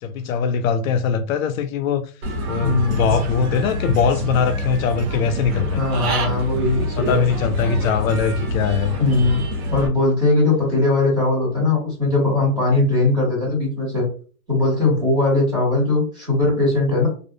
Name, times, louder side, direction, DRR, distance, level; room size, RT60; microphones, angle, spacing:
voice 1, 0.0-2.0 2.5-5.8 7.0-9.3, left 6 dB, 70° left, 0.5 m, -21 dB
Human voice / Bird, 2.2-9.9, equal, 70° right, 0.8 m, -26 dB
voice 2, 2.5-3.1 5.5-7.2 9.0-9.4 9.7-14.1 14.5-17.1, left 2 dB, 10° right, 1.2 m, -19 dB
2.4 x 2.4 x 2.3 m
supercardioid pair, 170°, 43 cm